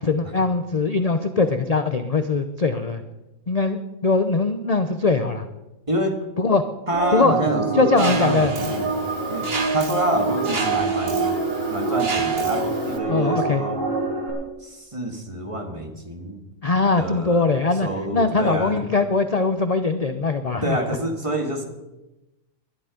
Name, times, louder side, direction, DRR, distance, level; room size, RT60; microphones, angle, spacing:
voice 1, 0.0-3.0 3.5-5.5 6.4-6.6 7.1-7.3 7.7-8.5 13.1-13.6 16.6-20.8, left 3 dB, 35° left, 9 dB, 0.7 m, -21 dB
voice 2, 5.9-6.2 6.9-8.9 9.3-11.3 11.7-13.8 14.6-16.4 17.0-18.8 20.6-21.6, right 1 dB, 20° right, 4 dB, 1.9 m, -27 dB
sound 1, 6.9-14.3, right 4 dB, 60° right, 6.8 m, -25 dB
Mechanisms, 8.0-13.0, right 3 dB, 45° right, 1.7 m, -31 dB
20.5 x 11.5 x 5.2 m, 1.0 s
omnidirectional pair, 1.5 m